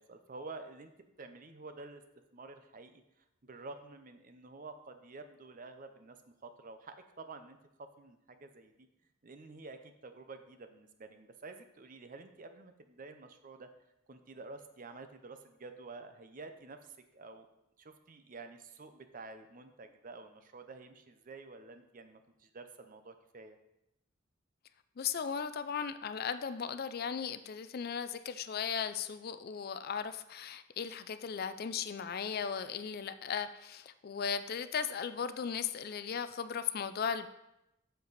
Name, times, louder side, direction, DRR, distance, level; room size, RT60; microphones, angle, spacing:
voice 1, 0.0-2.0 2.3-3.0 3.4-8.9 9.2-13.7 14.1-17.5 17.8-23.6, right 3 dB, 40° right, 8 dB, 0.6 m, -50 dB
voice 2, 25.0-37.3, left 7 dB, 50° left, 12 dB, 0.4 m, -37 dB
7.7 x 6.8 x 4.0 m, 0.87 s
head